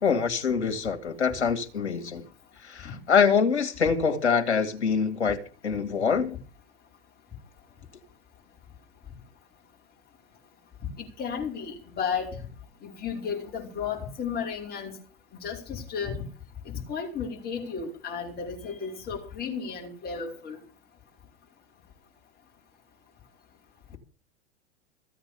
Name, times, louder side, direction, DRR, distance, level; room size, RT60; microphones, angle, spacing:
voice 1, 0.0-2.2 2.7-6.4, left 6 dB, 75° left, 2.2 m, -25 dB
voice 2, 11.0-12.4 12.8-15.0 15.4-16.2 16.6-20.6, left 6 dB, 30° left, 4.9 m, -33 dB
15.0 x 8.8 x 7.0 m
figure-of-eight pair, 95°, 34 cm